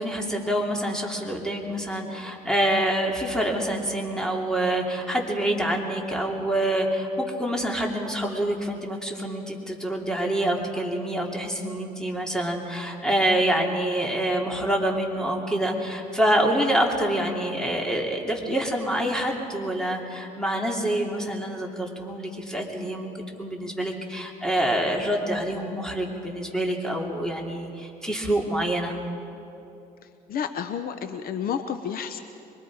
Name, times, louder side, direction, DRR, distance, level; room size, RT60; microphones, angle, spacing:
voice 1, 0.0-23.1 23.4-28.9, right 1 dB, 5° left, 0 dB, 2.9 m, -26 dB
voice 2, 30.3-32.2, left 7 dB, 60° left, 9 dB, 0.9 m, -30 dB
25.5 x 22.5 x 4.9 m, 2.8 s
cardioid pair, 110°, 17 cm